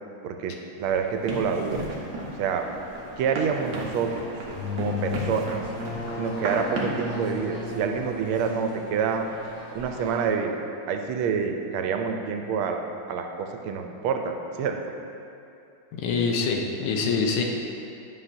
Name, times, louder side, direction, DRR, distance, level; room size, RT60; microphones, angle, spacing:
voice 1, 0.2-1.8 2.4-2.6 3.2-4.1 4.7-5.6 6.2-9.2 9.7-10.6 10.9-12.8 13.1-14.8, right 6 dB, 85° right, 4 dB, 1.4 m, -27 dB
sound 1, 0.8-10.3, equal, 65° left, 2.6 m, -46 dB
Run, 1.3-7.1, right 2 dB, 60° right, 1.3 m, -34 dB
sound 2, 4.4-9.9, left 4 dB, 35° left, 1.6 m, -35 dB
voice 2, 15.9-17.4, left 4 dB, 85° left, 1 dB, 1.6 m, -25 dB
9.9 x 5.7 x 2.6 m, 2.7 s
omnidirectional pair, 2.3 m